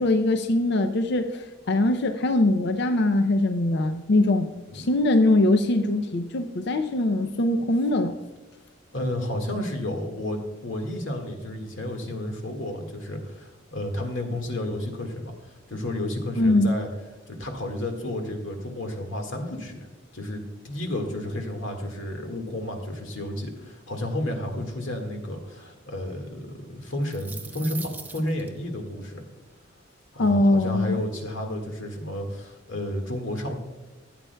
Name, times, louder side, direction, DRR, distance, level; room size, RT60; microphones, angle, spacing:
voice 1, 0.0-4.5 4.7-8.1 16.4-16.7 30.2-31.0, left 2 dB, 60° left, 7 dB, 0.5 m, -22 dB
voice 2, 8.9-16.9 17.3-19.8 20.1-29.2 30.1-33.5, left 1 dB, 75° left, 3 dB, 1.7 m, -32 dB
sound 1, 26.9-28.5, right 4 dB, 10° right, 0.5 m, -39 dB
16.0 x 8.5 x 2.2 m, 1.2 s
head